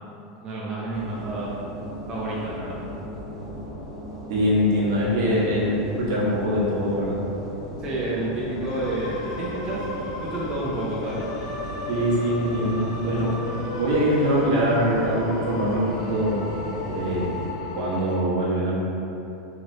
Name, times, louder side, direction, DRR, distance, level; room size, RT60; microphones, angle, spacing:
voice 1, 0.4-1.6 2.1-2.8 7.8-11.2, right 1 dB, 30° right, -6 dB, 0.5 m, -30 dB
sound 1, 0.9-17.5, equal, 15° left, 1.1 m, -37 dB
voice 2, 4.3-7.2 11.9-13.4 13.7-16.4 16.8-17.3 17.7-18.7, equal, 70° right, -7 dB, 0.9 m, -23 dB
sound 2, 8.6-18.2, left 2 dB, 70° left, 0.4 m, -36 dB
3.0 x 2.8 x 2.7 m, 2.9 s
supercardioid pair, 130°, 3 cm